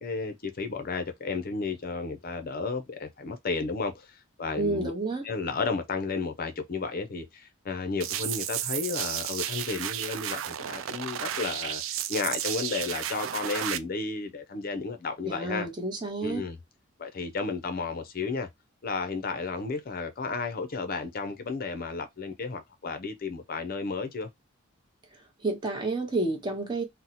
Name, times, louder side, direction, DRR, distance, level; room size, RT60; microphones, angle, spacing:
voice 1, 0.0-4.9 5.2-15.7 16.2-16.6 17.0-18.5 18.8-24.3, left 4 dB, 45° left, 0.5 m, -33 dB
voice 2, 4.6-5.3 15.2-16.4 25.4-26.8, right 2 dB, 20° right, 0.7 m, -30 dB
sound 1, 8.0-13.8, right 11 dB, 75° right, 0.3 m, -33 dB
2.7 x 2.1 x 3.9 m
head